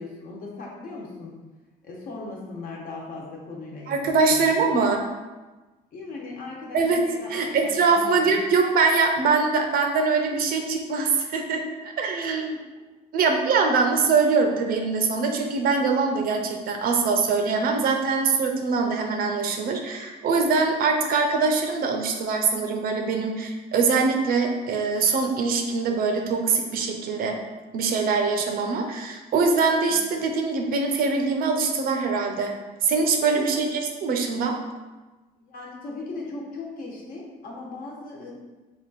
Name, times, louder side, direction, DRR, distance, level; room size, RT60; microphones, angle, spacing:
voice 1, 0.0-1.3 1.8-4.7 5.9-8.3 12.1-12.2 29.9-30.0 33.2-33.6 35.4-38.3, left 3 dB, 55° left, -3 dB, 1.1 m, -38 dB
voice 2, 3.9-5.0 6.7-7.0 7.3-12.6 13.1-27.4 27.7-32.6 32.8-34.6, right 4 dB, 60° right, 3 dB, 0.6 m, -23 dB
3.5 x 2.5 x 4.0 m, 1.2 s
cardioid pair, 110°, 17 cm